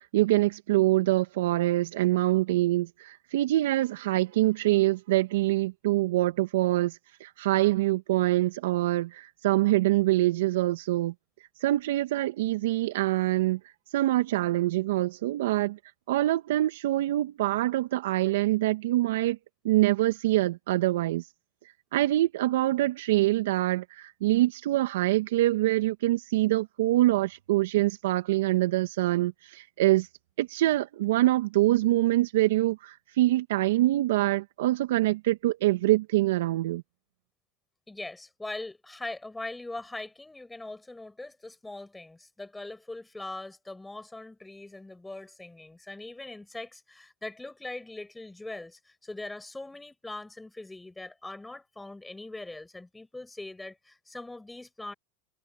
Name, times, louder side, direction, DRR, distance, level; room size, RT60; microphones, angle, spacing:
voice 1, 0.1-11.1 11.6-13.6 13.9-15.8 16.1-19.4 19.6-21.3 21.9-30.1 30.4-36.8, right 16 dB, 75° right, 2.0 m, -25 dB
voice 2, 37.9-54.9, left 2 dB, 10° left, 7.4 m, -41 dB
hypercardioid pair, 95°, 0 cm